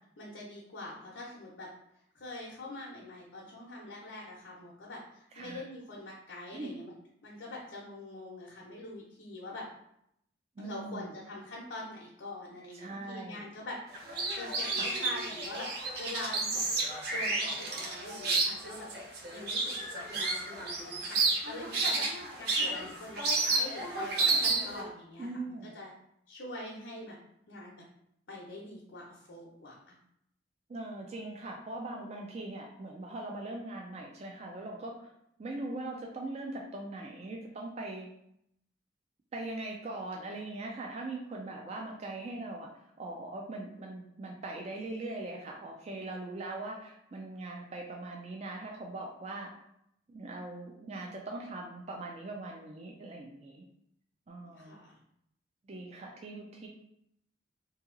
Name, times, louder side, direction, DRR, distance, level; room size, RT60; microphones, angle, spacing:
voice 1, 0.2-1.7 2.1-6.9 7.2-9.6 10.6-14.1 14.3-16.6 17.1-18.9 19.3-19.7 20.1-25.9 26.3-27.2 27.5-27.8 28.3-30.0 54.4-55.0, left 1 dB, 80° left, -4 dB, 0.7 m, -44 dB
voice 2, 10.6-11.1 12.7-13.4 14.7-14.9 25.2-25.7 30.7-35.1 35.4-38.1 39.3-42.7 43.0-49.5 50.1-53.6 54.3-54.8 55.6-56.7, right 2 dB, 35° right, 0 dB, 0.4 m, -41 dB
sound 1, 13.9-24.8, right 3 dB, 60° right, 0.7 m, -31 dB
2.8 x 2.7 x 3.8 m, 0.75 s
head